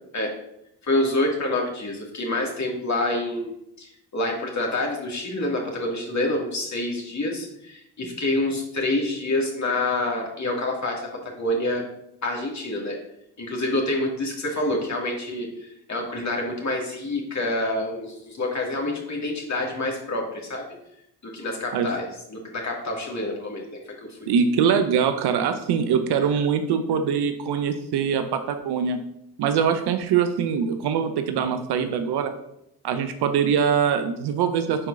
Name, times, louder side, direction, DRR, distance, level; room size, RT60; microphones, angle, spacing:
voice 1, 0.8-11.9 12.2-13.0 13.4-20.7 21.2-24.3, left 1 dB, 35° left, 0 dB, 2.3 m, -27 dB
voice 2, 24.3-29.0 29.4-32.3 32.8-34.9, right 7 dB, 55° right, 8 dB, 0.7 m, -23 dB
9.7 x 4.5 x 2.6 m, 0.80 s
hypercardioid pair, 45°, 48 cm